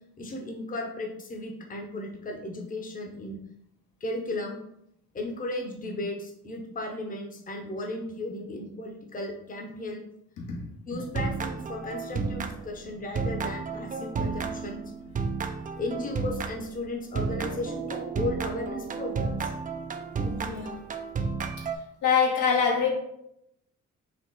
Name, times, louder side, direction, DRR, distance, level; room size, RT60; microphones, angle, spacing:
voice 1, 0.2-3.4 4.0-4.6 5.1-10.0 10.9-14.8 15.8-19.5, left 2 dB, 30° left, 2 dB, 0.8 m, -35 dB
voice 2, 10.4-11.0 12.2-12.3 20.2-20.8 21.6-21.7 22.0-22.9, left 6 dB, 80° left, 0 dB, 1.1 m, -26 dB
sound 1, 11.0-12.9 13.2-16.8 17.2-21.8, right 5 dB, 30° right, 0.4 m, -32 dB
4.2 x 2.4 x 4.0 m, 0.77 s
cardioid pair, 90°, 30 cm